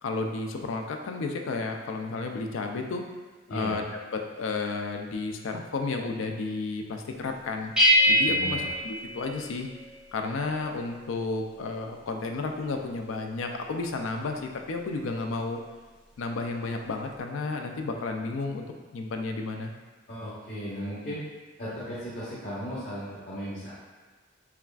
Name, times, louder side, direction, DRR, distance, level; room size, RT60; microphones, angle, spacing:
voice 1, 0.0-3.0 3.5-3.8 4.1-7.7 8.1-9.7 10.1-15.6 16.2-18.7 18.9-19.7, left 3 dB, 85° left, 4 dB, 0.4 m, -32 dB
sound 1, 7.8-10.0, equal, 5° right, 0.6 m, -23 dB
voice 2, 8.2-8.7 20.1-21.2 21.6-23.7, equal, 45° left, -11 dB, 0.9 m, -36 dB
5.7 x 2.4 x 2.3 m, 1.3 s
head